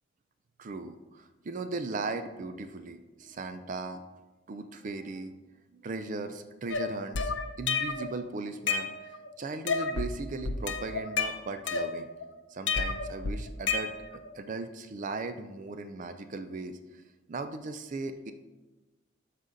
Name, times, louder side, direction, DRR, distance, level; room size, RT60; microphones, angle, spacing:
voice 1, 0.6-4.0 4.5-5.3 5.7-12.1 12.5-17.0 17.3-18.3, right 3 dB, 40° right, 9 dB, 0.4 m, -38 dB
sound 1, 6.7-8.1 8.5-9.3 9.7-10.1 10.5-12.2 12.7-14.3, left 4 dB, 65° left, 0.6 m, -31 dB
12.0 x 4.1 x 3.9 m, 1.1 s
head